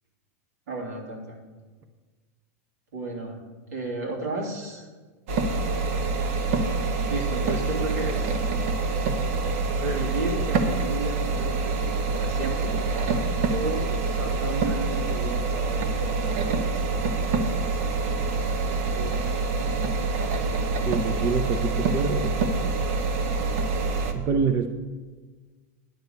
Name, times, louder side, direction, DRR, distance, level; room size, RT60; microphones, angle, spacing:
voice 1, 0.7-1.3 2.9-3.4 3.7-4.9 6.5-6.8 7.1-8.3 9.8-11.8 12.1-12.8 13.5-16.6 18.9-19.8, right 2 dB, 85° right, 0 dB, 3.1 m, -33 dB
sound 1, 5.3-24.1, right 4 dB, 65° right, 1.2 m, -26 dB
voice 2, 20.8-22.3 24.1-24.7, right 5 dB, 35° right, 7 dB, 0.7 m, -26 dB
10.5 x 5.1 x 8.2 m, 1.3 s
supercardioid pair, 135°, 9 cm